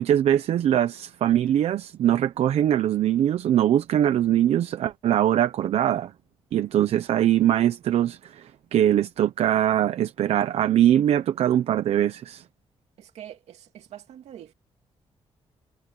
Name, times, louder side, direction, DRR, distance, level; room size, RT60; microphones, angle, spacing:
voice 1, 0.0-6.1 6.5-12.4, right 11 dB, 70° right, 0.8 m, -22 dB
voice 2, 13.0-14.5, right 11 dB, 85° right, 2.8 m, -44 dB
wide cardioid pair, 170°, 11 cm